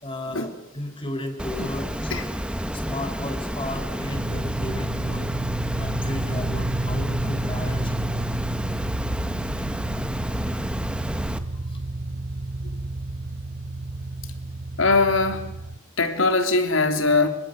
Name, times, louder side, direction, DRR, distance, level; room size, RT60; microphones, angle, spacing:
voice 1, 0.0-2.1 2.7-5.3 5.8-8.3 11.7-11.8, left 1 dB, 25° left, 4.6 m, -34 dB
Water, 1.4-11.4, equal, 5° right, 1.6 m, -30 dB
sound 1, 4.1-15.8, right 2 dB, 55° right, 1.1 m, -30 dB
voice 2, 14.8-15.6 16.0-17.3, left 3 dB, 75° left, 3.6 m, -21 dB
27.0 x 25.0 x 8.3 m
head